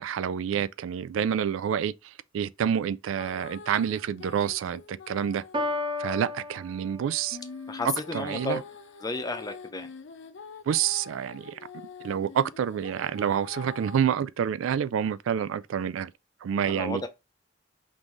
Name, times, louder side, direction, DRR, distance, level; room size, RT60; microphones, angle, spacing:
voice 1, 0.0-1.9 2.3-5.4 6.0-7.4 8.1-8.6 10.7-11.6 12.0-16.1 16.4-17.1, right 8 dB, 90° right, 0.3 m, -28 dB
sound 1, 3.2-5.8 7.3-14.1, left 5 dB, 65° left, 0.5 m, -44 dB
Piano, 5.5-7.5, left 2 dB, 25° right, 0.7 m, -33 dB
voice 2, 7.7-8.6 9.0-9.9 16.7-17.1, left 2 dB, 20° left, 0.6 m, -32 dB
5.3 x 2.6 x 3.1 m
head